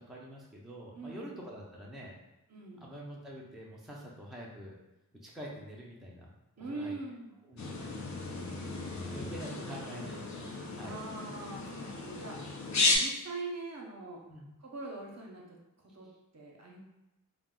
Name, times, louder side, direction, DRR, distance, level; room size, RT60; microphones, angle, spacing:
voice 1, 0.0-2.2 2.8-4.7 5.2-6.3 6.7-6.9 7.5-7.8 9.1-11.0 14.3-14.5, equal, ahead, -3 dB, 0.5 m, -46 dB
voice 2, 0.9-1.4 2.5-2.9 6.6-7.3 8.3-9.5 10.8-14.2 14.6-15.6 15.9-16.1 16.3-16.8, right 3 dB, 45° right, -1 dB, 0.6 m, -43 dB
sound 1, 7.6-13.0, left 3 dB, 50° left, 0.5 m, -34 dB
2.4 x 2.0 x 3.6 m, 1.0 s
wide cardioid pair, 85°, 36 cm